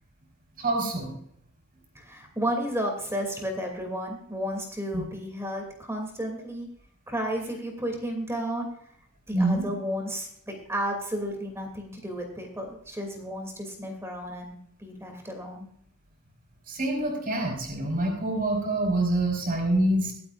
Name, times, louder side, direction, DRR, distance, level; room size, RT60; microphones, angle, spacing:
voice 1, 0.6-1.1 4.9-5.0 9.3-9.7 16.7-20.1, right 1 dB, 45° right, 0 dB, 4.5 m, -26 dB
voice 2, 1.9-6.7 7.1-8.7 9.3-15.7, equal, 15° right, 3 dB, 2.7 m, -32 dB
23.5 x 8.5 x 2.5 m, 0.66 s
head